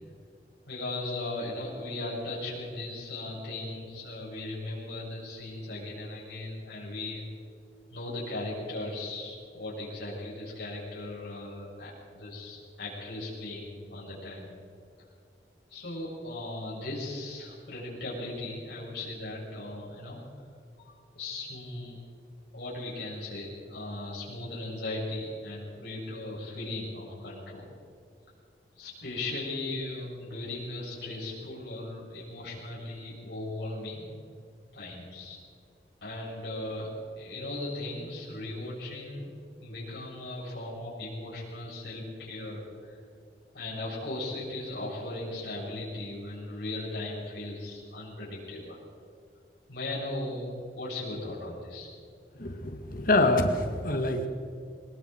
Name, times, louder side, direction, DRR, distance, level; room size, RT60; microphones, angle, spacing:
voice 1, 0.7-7.2 7.9-14.5 15.7-20.5 20.8-22.0 22.5-27.7 28.8-34.1 34.7-35.4 36.0-36.9 37.2-39.3 39.6-43.0 43.5-48.8 49.7-51.9, left 2 dB, 75° left, -6 dB, 7.4 m, -37 dB
voice 2, 52.4-54.3, left 2 dB, 55° left, 5 dB, 2.0 m, -25 dB
25.5 x 22.5 x 4.6 m, 2.3 s
head